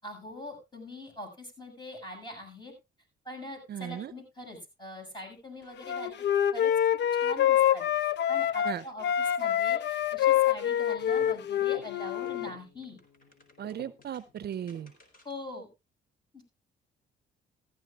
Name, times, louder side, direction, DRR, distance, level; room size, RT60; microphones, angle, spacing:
voice 1, 0.0-2.7 3.2-6.1 6.5-6.7 7.2-9.1 9.4-13.0 15.2-15.7 16.3-16.4, left 1 dB, 20° left, 3 dB, 6.8 m, -43 dB
voice 2, 3.7-4.1 8.6-8.8 13.6-14.9, right 9 dB, 55° right, 15 dB, 0.6 m, -36 dB
Wind instrument woodwind instrument, 5.9-8.8 9.0-12.5, left 10 dB, 60° left, 0.6 m, -26 dB
sound 1, 10.9-15.5, left 1 dB, 45° left, 4.1 m, -53 dB
15.0 x 14.0 x 2.5 m, 0.24 s
cardioid pair, 90°, 20 cm